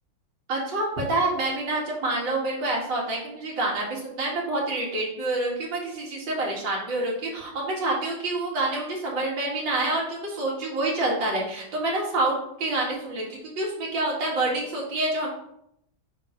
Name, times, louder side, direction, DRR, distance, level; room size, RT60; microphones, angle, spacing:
voice 1, 0.5-15.3, right 2 dB, 85° right, -3 dB, 2.5 m, -27 dB
7.0 x 3.8 x 4.9 m, 0.76 s
omnidirectional pair, 1.9 m